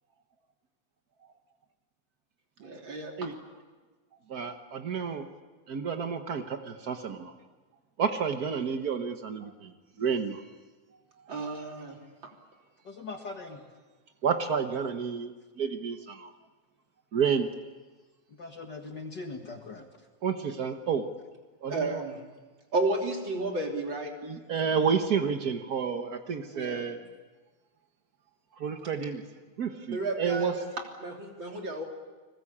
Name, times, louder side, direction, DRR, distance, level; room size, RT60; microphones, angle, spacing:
voice 1, 2.6-3.3 11.3-12.0 21.7-22.2 22.7-24.1 26.5-26.8 29.9-30.7 31.0-31.8, right 2 dB, 40° right, 1 dB, 3.8 m, -32 dB
voice 2, 4.3-5.3 5.7-7.3 8.0-9.7 10.0-10.4 14.2-16.3 17.1-17.5 20.2-21.1 21.6-22.0 24.2-27.0 28.6-29.2 29.6-30.6, right 6 dB, 80° right, 7 dB, 0.8 m, -30 dB
voice 3, 12.9-13.6 18.4-19.9, left 3 dB, 40° left, 3 dB, 1.9 m, -40 dB
29.5 x 21.0 x 8.6 m, 1.3 s
omnidirectional pair, 3.5 m